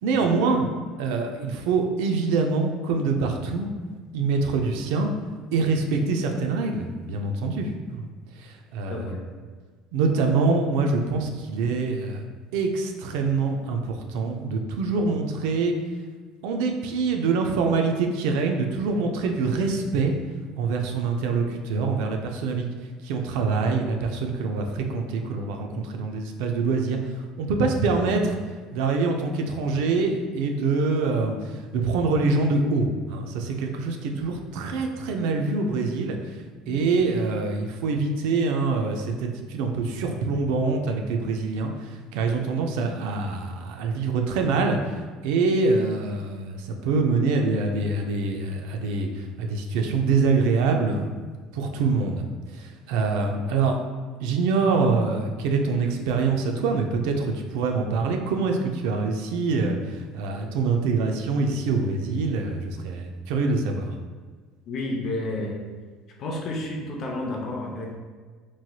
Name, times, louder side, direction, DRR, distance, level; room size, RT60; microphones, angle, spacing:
voice 1, 0.0-0.7 1.0-3.7 4.1-5.1 5.5-8.1 8.4-9.0 9.9-12.2 12.5-15.7 16.4-20.1 20.6-22.7 23.0-28.4 28.7-51.1 51.5-53.8 54.2-63.9, right 4 dB, 80° right, 3 dB, 0.3 m, -25 dB
voice 2, 8.9-9.3 36.7-36.9 64.7-65.7 66.2-68.0, left 2 dB, 45° left, 0 dB, 0.5 m, -31 dB
3.0 x 2.8 x 2.2 m, 1.5 s
cardioid pair, 125°, 0 cm